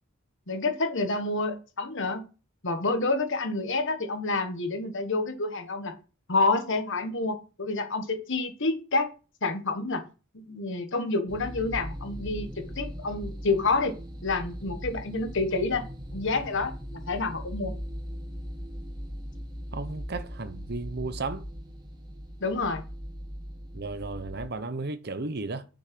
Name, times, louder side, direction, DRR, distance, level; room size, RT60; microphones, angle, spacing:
voice 1, 0.5-2.3 2.6-5.9 6.3-9.1 9.4-10.0 10.3-15.8 16.1-17.8 22.4-22.8, left 3 dB, 55° left, 1.4 m, -28 dB
sound 1, 11.3-24.5, equal, 20° right, 1.3 m, -39 dB
voice 2, 19.7-21.5 23.7-25.7, right 3 dB, 50° right, 0.9 m, -34 dB
6.4 x 6.4 x 6.0 m
head